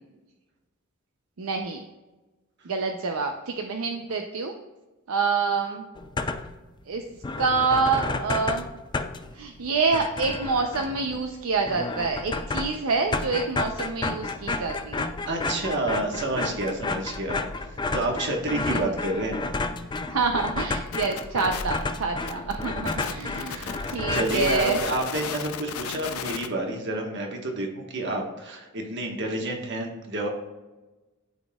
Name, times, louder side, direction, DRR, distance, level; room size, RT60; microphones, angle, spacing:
voice 1, 1.4-1.8 2.6-4.5 5.1-5.9 6.9-7.0 7.4-8.7 9.3-15.1 18.5-18.8 20.1-24.8, right 4 dB, 75° right, 3 dB, 0.6 m, -27 dB
sound 1, 6.0-6.7 7.0-7.1 7.2-25.1, left 3 dB, 20° left, 0.4 m, -32 dB
voice 2, 15.3-19.5 23.5-30.3, right 1 dB, 55° right, 1 dB, 1.3 m, -29 dB
sound 2, 20.9-26.5, left 8 dB, 85° left, 0.5 m, -35 dB
12.0 x 4.1 x 2.3 m, 1.1 s
head